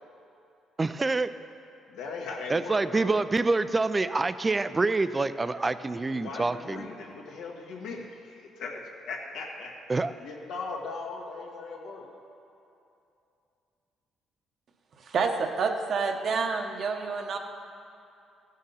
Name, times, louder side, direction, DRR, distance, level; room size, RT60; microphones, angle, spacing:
voice 1, 0.8-1.3 2.5-6.9 9.9-10.1, right 3 dB, 20° right, 13 dB, 0.4 m, -26 dB
voice 2, 1.9-3.2 6.1-9.7 10.2-12.1, left 4 dB, 85° left, -1 dB, 1.7 m, -38 dB
voice 3, 15.0-17.4, right 5 dB, 55° right, 5 dB, 1.0 m, -28 dB
15.5 x 6.5 x 5.6 m, 2.7 s
cardioid pair, 105°, 0 cm